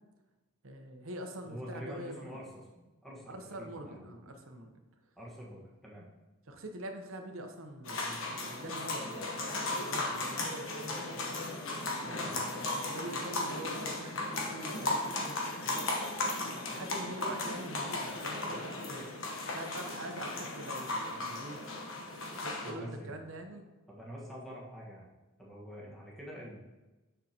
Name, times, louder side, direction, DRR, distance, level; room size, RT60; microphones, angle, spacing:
voice 1, 0.6-2.4 3.3-4.7 6.5-11.1 12.0-16.0 16.7-19.1 19.4-21.6 22.3-23.6 25.9-26.0, right 1 dB, 65° right, 5 dB, 0.8 m, -45 dB
voice 2, 1.4-2.5 2.8-4.2 5.2-6.1 12.2-12.4 22.6-23.2 23.9-25.1 25.4-26.6, equal, ahead, -5 dB, 1.4 m, -46 dB
sound 1, 7.9-22.7, left 2 dB, 65° left, 1.2 m, -36 dB
6.6 x 6.5 x 2.9 m, 1.1 s
head